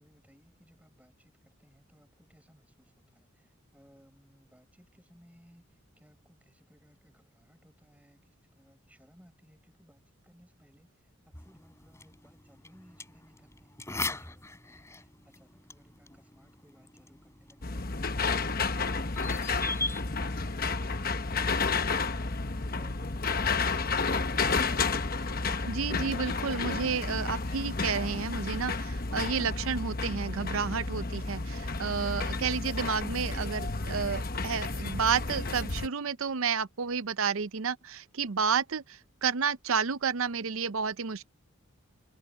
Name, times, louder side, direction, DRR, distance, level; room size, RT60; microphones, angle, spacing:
voice 1, 0.0-24.4, equal, 5° right, 6.6 m, -62 dB
sound 1, 11.3-22.4, left 3 dB, 15° left, 4.0 m, -42 dB
sound 2, 17.6-35.9, left 4 dB, 45° left, 1.1 m, -31 dB
voice 2, 25.7-41.3, right 6 dB, 75° right, 0.6 m, -31 dB
head